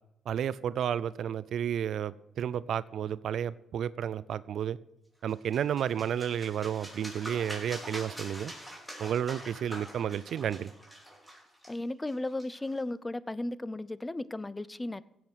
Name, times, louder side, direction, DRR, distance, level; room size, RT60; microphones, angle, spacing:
voice 1, 0.3-4.8 5.2-8.5 9.0-10.7, right 9 dB, 65° right, 0.4 m, -32 dB
sound 1, 5.3-12.8, equal, ahead, 4.7 m, -45 dB
voice 2, 11.7-15.0, left 2 dB, 15° left, 0.6 m, -35 dB
16.0 x 7.8 x 6.3 m
cardioid pair, 90°, 0 cm